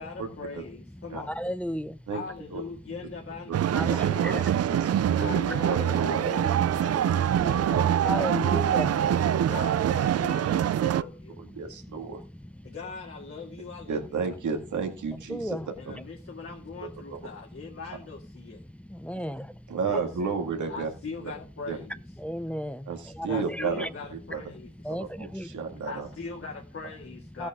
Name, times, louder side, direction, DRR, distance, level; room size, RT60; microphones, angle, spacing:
voice 1, 0.0-1.4 2.1-4.4 5.2-8.5 9.5-11.4 12.6-14.4 15.8-18.6 19.8-20.4 20.7-22.0 23.3-24.9 25.8-27.5, left 4 dB, 50° left, 2.1 m, -41 dB
voice 2, 0.9-2.1 3.7-4.6 6.5-6.9 8.0-9.4 11.1-12.7 13.5-13.6 15.3-15.7 18.6-19.8 22.2-23.9 24.5-25.8 27.4-27.5, equal, 5° left, 0.6 m, -36 dB
sound 1, 3.5-11.0, right 10 dB, 55° right, 0.4 m, -25 dB
voice 3, 3.7-6.3 7.7-7.9 8.3-8.6 9.0-9.6 10.9-11.0 11.4-12.2 13.9-15.6 16.8-17.2 19.7-20.9 21.7-21.8 22.9-23.8 24.3-24.4 24.9-26.1, right 5 dB, 85° right, 2.0 m, -32 dB
17.0 x 7.9 x 3.7 m
wide cardioid pair, 140°, 29 cm